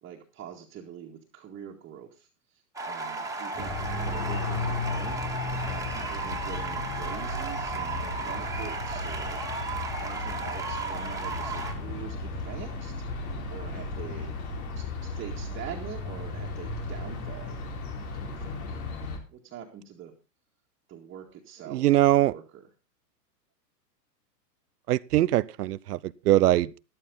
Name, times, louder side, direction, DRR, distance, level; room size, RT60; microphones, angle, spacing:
voice 1, 0.0-5.2 5.6-9.7 10.0-13.0 13.5-14.4 14.8-17.6 18.1-18.8 19.3-20.1 20.9-22.6, right 8 dB, 25° right, 2.0 m, -44 dB
sound 1, 2.8-11.7, right 3 dB, 5° right, 2.2 m, -34 dB
sound 2, 3.5-19.2, left 3 dB, 60° left, 4.4 m, -35 dB
voice 2, 21.7-22.3 24.9-26.8, right 15 dB, 65° right, 0.7 m, -22 dB
13.5 x 11.5 x 3.9 m
hypercardioid pair, 120°, 49 cm